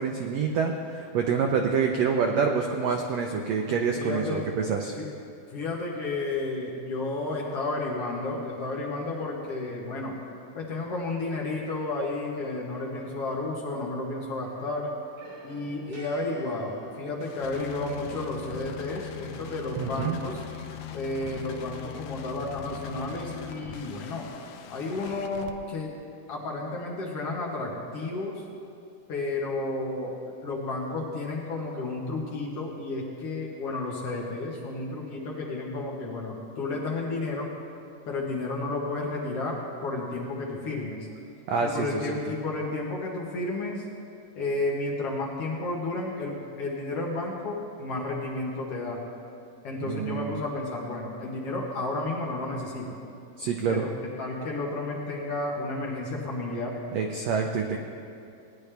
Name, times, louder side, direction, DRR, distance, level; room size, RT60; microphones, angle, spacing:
voice 1, 0.0-4.9 19.8-20.2 41.5-42.1 49.8-50.4 53.4-53.8 56.9-57.8, right 5 dB, 80° right, 3 dB, 1.5 m, -27 dB
voice 2, 4.0-4.5 5.0-5.1 5.5-10.2 10.5-14.9 15.4-20.4 20.9-24.3 24.7-25.9 26.3-28.4 29.1-30.1 30.4-37.5 38.1-41.0 41.6-43.8 44.4-49.0 49.6-53.0 53.7-56.8, left 2 dB, 60° left, -3 dB, 1.8 m, -32 dB
sound 1, 13.0-14.1 14.4-17.9, equal, 55° right, 4.2 m, -50 dB
sound 2, 17.2-25.5, left 10 dB, 85° left, 2.3 m, -41 dB
18.5 x 10.5 x 3.3 m, 2.5 s
omnidirectional pair, 3.8 m